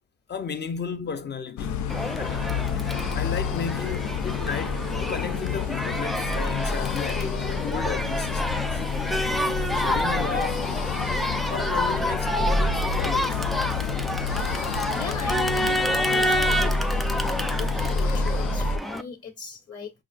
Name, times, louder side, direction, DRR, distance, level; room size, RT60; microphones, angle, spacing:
voice 1, 0.3-1.9 2.2-2.5 3.1-8.8 9.7-10.8 11.5-13.5, left 6 dB, 35° left, 0.8 m, -33 dB
sound 1, 1.6-18.8, left 5 dB, 70° left, 0.6 m, -28 dB
Crowd, 1.9-19.0, equal, ahead, 0.4 m, -29 dB
voice 2, 14.9-16.8 17.2-19.9, left 5 dB, 50° left, 1.4 m, -38 dB
6.1 x 2.5 x 2.4 m
cardioid pair, 90°, 30 cm